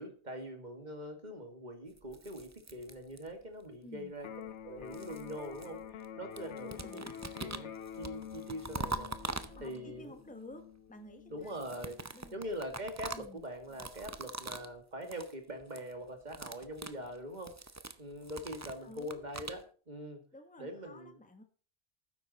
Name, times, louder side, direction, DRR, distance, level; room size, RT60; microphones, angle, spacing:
voice 1, 0.0-4.3 4.6-7.1 7.4-9.1 9.6-10.1 11.3-12.0 12.3-17.6 18.0-20.2 20.6-21.2, equal, 40° right, 5 dB, 2.2 m, -43 dB
sound 1, 2.0-3.5 4.5-6.1 6.3-10.0 11.4-14.7 15.0-15.3 15.6-15.9 16.2-19.6, right 3 dB, 20° right, 0.5 m, -44 dB
voice 2, 3.8-4.1 6.6-7.2 9.3-11.5 12.1-12.4 13.1-13.4 18.8-19.3 20.3-21.4, left 1 dB, 5° left, 7 dB, 1.2 m, -52 dB
Electric guitar, 4.2-12.2, left 8 dB, 85° left, 1.1 m, -48 dB
12.0 x 9.7 x 4.1 m, 0.42 s
omnidirectional pair, 1.2 m